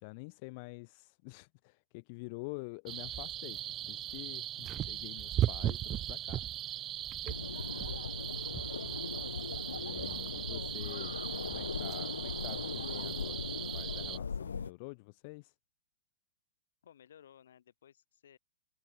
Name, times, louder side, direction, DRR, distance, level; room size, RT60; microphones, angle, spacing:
voice 1, 0.0-6.5 9.7-11.2 11.5-15.5, left 29 dB, 45° left, 0.5 m, -47 dB
sound 1, 2.9-14.2, right 12 dB, 25° right, 0.8 m, -38 dB
sound 2, 7.3-14.7, left 6 dB, 85° left, 1.1 m, -39 dB
voice 2, 7.5-8.0 16.8-18.4, left 9 dB, 70° left, 5.2 m, -59 dB
open air
hypercardioid pair, 120°, 0 cm